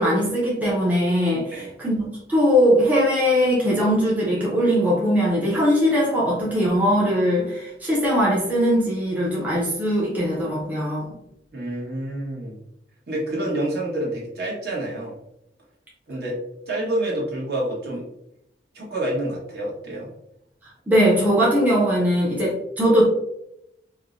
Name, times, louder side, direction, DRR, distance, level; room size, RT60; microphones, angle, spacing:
voice 1, 0.0-11.1 20.9-23.1, equal, 10° right, -6 dB, 0.6 m, -20 dB
voice 2, 11.5-12.6 13.1-15.2 16.1-16.4 16.7-18.0 18.7-20.1, right 1 dB, 60° right, -4 dB, 1.2 m, -28 dB
4.6 x 2.1 x 2.4 m, 0.82 s
head